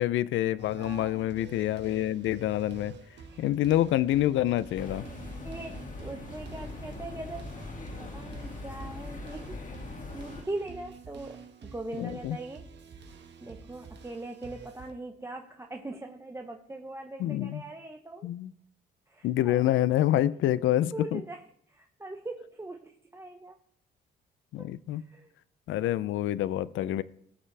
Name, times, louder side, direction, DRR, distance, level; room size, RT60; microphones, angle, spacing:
voice 1, 0.0-2.9 3.4-5.0 12.0-12.4 17.2-17.6 18.2-18.5 19.2-21.2 24.5-25.0 25.7-27.0, left 13 dB, 80° left, 0.5 m, -27 dB
sound 1, 0.6-14.9, right 5 dB, 65° right, 1.8 m, -49 dB
voice 2, 0.8-1.3 3.2-3.4 5.4-7.5 8.0-9.6 10.1-12.7 13.4-18.3 19.1-19.6 20.9-23.6 24.6-25.3 25.8-26.0, right 2 dB, 15° right, 0.9 m, -41 dB
sound 2, 4.7-10.4, left 2 dB, 40° left, 2.1 m, -41 dB
18.0 x 7.3 x 3.4 m
cardioid pair, 90°, 20 cm